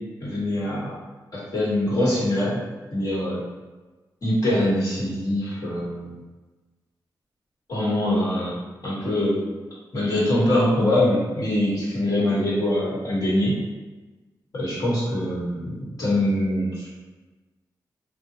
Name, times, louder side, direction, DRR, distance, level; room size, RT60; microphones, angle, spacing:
voice 1, 0.2-0.9 1.3-2.6 2.9-3.4 4.2-6.1 7.7-8.6 8.8-9.4 9.9-13.6 14.5-17.0, left 1 dB, 50° left, -8 dB, 1.3 m, -23 dB
3.6 x 2.2 x 2.8 m, 1.2 s
wide cardioid pair, 125°, 8 cm